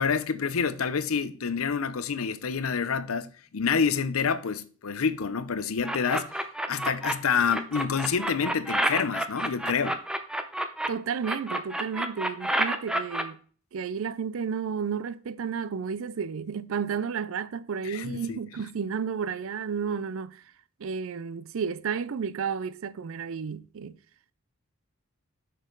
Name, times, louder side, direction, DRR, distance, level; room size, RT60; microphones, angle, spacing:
voice 1, 0.0-6.3 6.7-10.0 17.8-18.4, left 6 dB, 70° left, 0.6 m, -28 dB
sound 1, 5.8-7.1 7.5-10.9 11.2-13.2, right 1 dB, 5° right, 0.6 m, -28 dB
voice 2, 10.9-13.4 13.7-20.4 20.8-23.9, right 6 dB, 65° right, 0.4 m, -32 dB
6.7 x 6.4 x 3.8 m
head